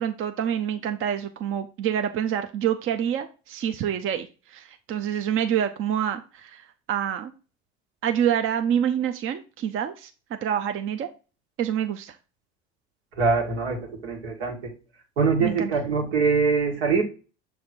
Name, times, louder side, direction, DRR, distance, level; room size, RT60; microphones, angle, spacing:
voice 1, 0.0-7.3 8.0-10.1 10.4-11.1 11.6-12.2 15.4-15.7, right 9 dB, 40° right, 7 dB, 0.6 m, -27 dB
voice 2, 13.2-14.7 15.2-17.0, right 5 dB, 80° right, 1 dB, 1.9 m, -23 dB
6.6 x 3.4 x 4.3 m, 0.33 s
hypercardioid pair, 85°, 32 cm